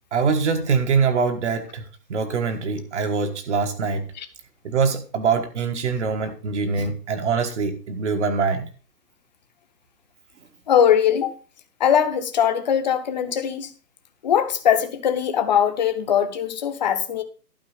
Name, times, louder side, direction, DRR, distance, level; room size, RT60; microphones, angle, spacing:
voice 1, 0.1-1.8 2.1-4.0 4.6-8.6, right 5 dB, 45° right, 1.5 m, -23 dB
voice 2, 10.7-11.3 11.8-13.7 14.2-17.2, left 9 dB, 25° left, 0.9 m, -21 dB
12.0 x 4.8 x 6.5 m
hypercardioid pair, 150°, 49 cm